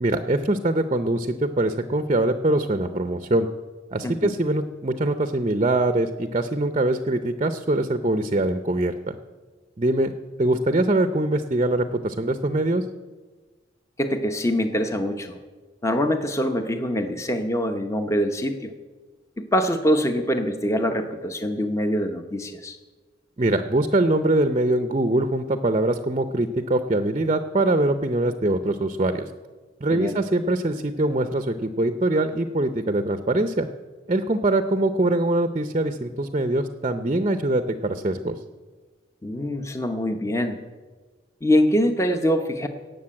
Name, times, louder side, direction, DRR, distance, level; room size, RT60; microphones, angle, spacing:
voice 1, 0.0-3.5 3.9-9.2 9.8-10.1 10.4-12.8 23.4-29.3 29.8-33.7 34.1-38.3, right 1 dB, 30° right, 9 dB, 0.6 m, -23 dB
voice 2, 14.0-15.4 15.8-18.7 19.4-22.8 29.9-30.2 39.2-40.6 41.4-42.7, equal, 15° left, 6 dB, 0.8 m, -24 dB
17.5 x 6.7 x 8.7 m, 1.3 s
head